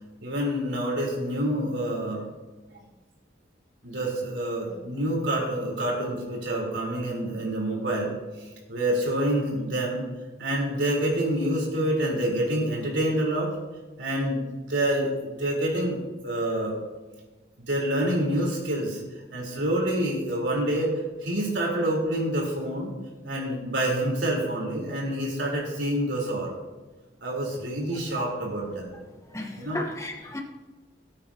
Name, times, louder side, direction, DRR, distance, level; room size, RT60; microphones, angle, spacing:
voice 1, 0.2-2.3 3.8-10.0 10.4-13.5 14.0-16.0 16.2-16.8 17.6-19.0 19.3-22.9 23.2-26.5 27.2-28.9 29.6-29.8, right 1 dB, 90° right, -3 dB, 4.1 m, -27 dB
voice 2, 29.3-30.4, left 1 dB, 15° left, 2 dB, 1.1 m, -34 dB
18.5 x 8.9 x 2.9 m, 1.2 s
head